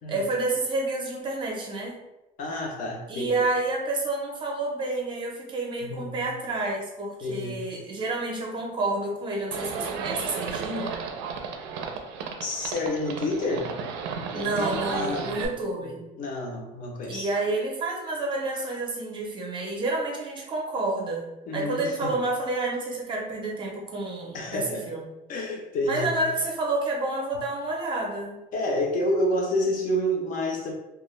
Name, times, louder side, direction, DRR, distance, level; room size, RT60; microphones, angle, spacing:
voice 1, 0.1-2.0 3.1-10.9 14.3-16.0 17.1-21.2 21.5-25.0 25.9-28.4, right 2 dB, 25° right, -1 dB, 0.5 m, -29 dB
voice 2, 2.4-3.4 5.8-6.2 7.2-7.6 12.4-13.7 14.3-15.4 15.8-17.3 21.5-22.2 24.3-24.9 25.3-26.2 28.5-30.7, left 1 dB, 50° left, 0 dB, 0.6 m, -29 dB
Livestock farm animals working animals, 9.5-15.5, right 6 dB, 85° right, 0.4 m, -33 dB
2.3 x 2.1 x 3.0 m, 0.98 s
cardioid pair, 155°, 18 cm